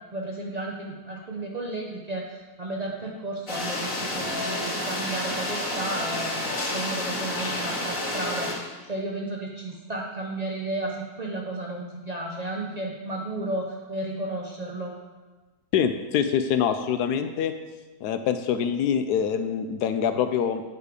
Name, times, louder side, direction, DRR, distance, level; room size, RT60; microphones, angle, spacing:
voice 1, 0.1-15.0, right 2 dB, 80° right, -1 dB, 0.3 m, -33 dB
sound 1, 3.5-8.5, left 1 dB, 30° left, 2.0 m, -30 dB
voice 2, 15.7-17.5 18.0-20.6, left 8 dB, 70° left, 9 dB, 1.0 m, -25 dB
9.1 x 5.1 x 4.8 m, 1.2 s
omnidirectional pair, 1.9 m